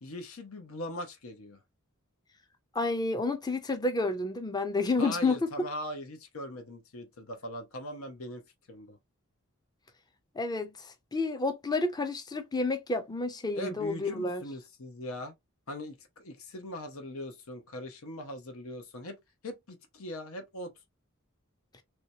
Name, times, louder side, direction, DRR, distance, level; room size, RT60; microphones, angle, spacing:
voice 1, 0.0-1.6 5.0-9.0 13.5-15.3 15.7-19.2 19.4-20.7, left 1 dB, 90° left, 0.9 m, -40 dB
voice 2, 2.7-5.5 10.4-14.4, left 3 dB, 20° left, 0.5 m, -30 dB
3.2 x 2.9 x 2.7 m
head